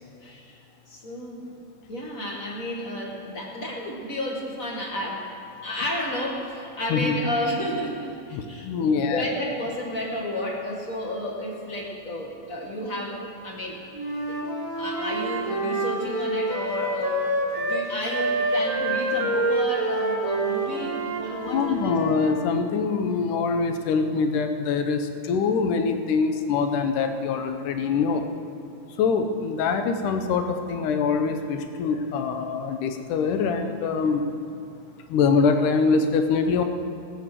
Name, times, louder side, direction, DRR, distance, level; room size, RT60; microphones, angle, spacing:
voice 1, 0.2-0.6 0.9-1.5 1.9-5.3 5.6-13.8 14.3-14.4 14.8-21.9, left 1 dB, 40° left, -1 dB, 1.2 m, -31 dB
voice 2, 8.3-9.3 21.5-28.2 29.0-34.2 35.1-36.6, left 5 dB, 70° left, 7 dB, 2.3 m, -24 dB
Wind instrument woodwind instrument, 13.9-17.8 18.1-22.4, right 1 dB, 50° right, 0.9 m, -27 dB
18.5 x 9.1 x 6.7 m, 2.5 s
omnidirectional pair, 4.1 m